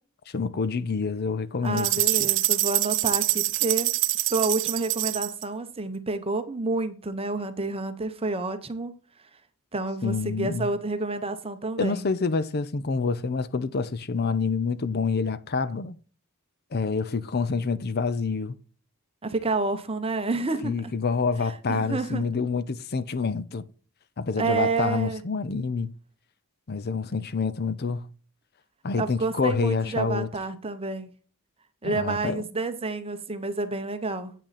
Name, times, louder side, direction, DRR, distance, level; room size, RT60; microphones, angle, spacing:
voice 1, 0.3-2.3 10.0-10.7 11.8-16.0 16.7-18.5 20.6-23.6 24.2-25.9 26.7-28.1 28.8-30.3 31.8-32.4, left 4 dB, 45° left, 0.6 m, -27 dB
voice 2, 1.6-3.9 4.2-9.0 9.7-12.1 19.2-20.9 21.4-22.2 24.4-25.2 29.0-31.1 31.8-34.3, right 3 dB, 25° right, 0.9 m, -29 dB
sound 1, 1.8-5.4, right 16 dB, 60° right, 0.6 m, -25 dB
8.6 x 6.3 x 4.1 m
head